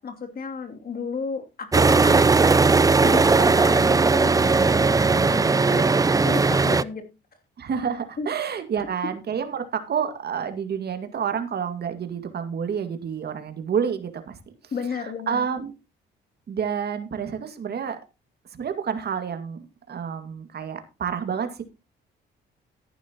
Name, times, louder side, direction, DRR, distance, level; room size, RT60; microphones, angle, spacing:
voice 1, 0.0-2.3 3.0-7.1 8.2-8.3 14.7-15.4, left 5 dB, 50° left, 4 dB, 2.8 m, -33 dB
sound 1, 1.7-6.8, right 4 dB, 15° right, 0.5 m, -18 dB
voice 2, 7.6-14.4 14.9-15.7 16.5-18.0 18.5-19.6 19.9-21.6, right 7 dB, 55° right, 7 dB, 2.1 m, -29 dB
14.0 x 11.0 x 2.9 m, 0.26 s
cardioid pair, 90°, 20 cm